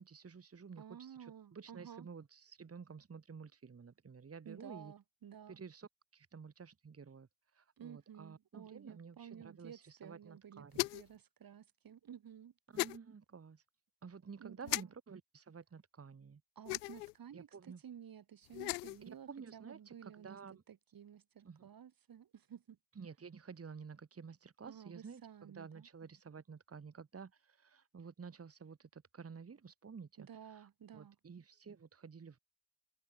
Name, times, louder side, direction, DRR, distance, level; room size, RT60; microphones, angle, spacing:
voice 1, 0.0-4.9 5.5-10.9 12.7-13.6 14.0-16.4 17.3-17.8 19.3-20.6 21.4-21.7 23.0-32.4, right 5 dB, 30° right, 2.4 m, -52 dB
voice 2, 0.8-2.1 4.4-5.6 7.8-10.7 10.9-12.5 14.4-14.9 16.6-20.4 20.7-22.8 24.7-25.9 30.2-31.2, right 9 dB, 45° right, 2.6 m, -53 dB
sound 1, 10.7-11.2 12.8-13.0 14.7-14.8 16.7-17.1 18.5-19.0, left 23 dB, 85° left, 0.8 m, -37 dB
open air
hypercardioid pair, 50°, 46 cm